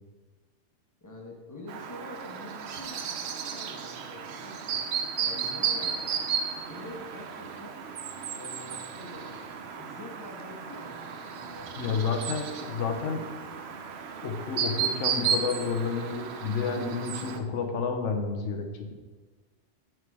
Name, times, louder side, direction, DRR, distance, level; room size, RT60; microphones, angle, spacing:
voice 1, 1.0-4.8 5.2-6.2 6.6-7.8 8.3-9.4 9.8-12.0 12.5-13.1, left 2 dB, 15° left, -1 dB, 1.1 m, -46 dB
Chirp tweet, 1.7-17.4, right 7 dB, 70° right, 0.8 m, -34 dB
voice 2, 11.8-13.2 14.2-18.9, left 5 dB, 90° left, 5 dB, 1.1 m, -30 dB
7.7 x 3.7 x 4.8 m, 1.4 s
omnidirectional pair, 1.2 m